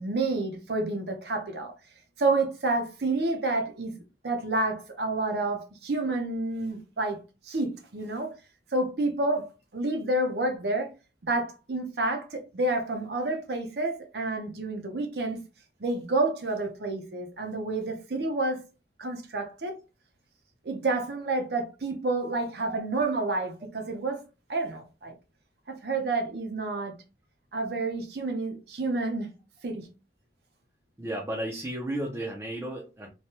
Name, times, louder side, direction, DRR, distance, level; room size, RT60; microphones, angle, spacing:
voice 1, 0.0-1.7 2.2-7.2 7.4-8.3 8.7-10.9 11.2-15.4 15.8-18.6 19.0-19.8 20.6-24.2 24.5-25.1 25.7-26.9 27.5-29.3 29.6-29.9, right 2 dB, 65° right, 0.7 m, -29 dB
voice 2, 31.0-33.1, right 1 dB, 15° right, 0.5 m, -33 dB
3.2 x 2.2 x 2.8 m
head